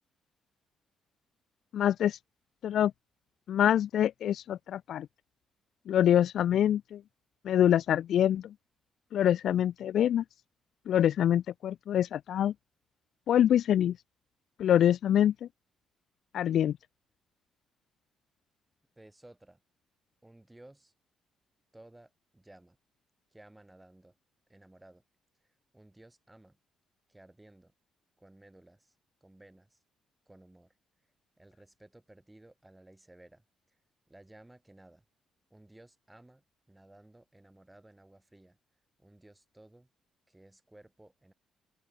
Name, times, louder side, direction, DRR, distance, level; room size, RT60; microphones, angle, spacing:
voice 1, 1.7-2.2 2.6-2.9 3.5-5.1 5.9-7.0 7.4-8.5 9.1-10.2 10.9-12.5 13.3-14.0 14.6-15.5 16.3-16.7, left 10 dB, 70° left, 0.4 m, -25 dB
voice 2, 19.0-19.6 20.2-20.9 21.7-22.8 23.3-24.2 24.5-25.0 25.4-25.5 25.7-26.6 27.1-27.7 28.2-29.0 29.2-29.8 30.3-30.8 31.4-33.8 34.1-35.1 35.5-38.6 39.0-39.9 40.3-41.3, right 1 dB, 15° right, 7.1 m, -57 dB
open air
supercardioid pair, 60°, 0 cm